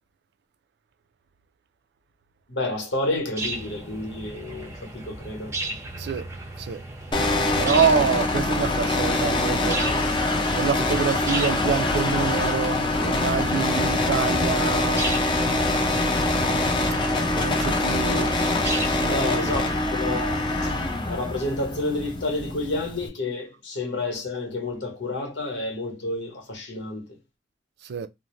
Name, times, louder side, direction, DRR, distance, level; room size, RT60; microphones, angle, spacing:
voice 1, 2.5-5.8 19.1-20.7 21.1-27.2, left 2 dB, 80° left, 1.0 m, -30 dB
sound 1, 3.4-19.7, right 2 dB, 15° right, 0.6 m, -36 dB
voice 2, 6.0-6.3 6.6-6.8 7.5-9.8 10.6-15.1 17.3-18.3 19.0-19.5 27.8-28.1, right 6 dB, 65° right, 0.3 m, -26 dB
sound 2, 7.1-23.1, left 2 dB, 25° left, 0.6 m, -24 dB
2.5 x 2.1 x 3.0 m
head